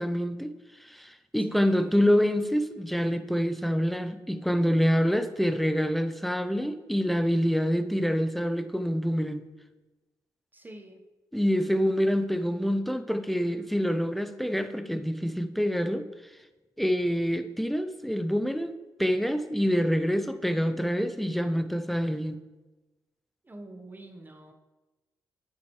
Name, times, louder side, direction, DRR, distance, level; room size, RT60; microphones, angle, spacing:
voice 1, 0.0-9.4 11.3-16.1 16.8-22.4, equal, ahead, 9 dB, 0.6 m, -26 dB
voice 2, 1.5-2.0 10.5-11.0 23.4-24.5, right 1 dB, 25° right, 5 dB, 1.1 m, -46 dB
9.2 x 7.2 x 3.2 m, 1.2 s
supercardioid pair, 55°, 8 cm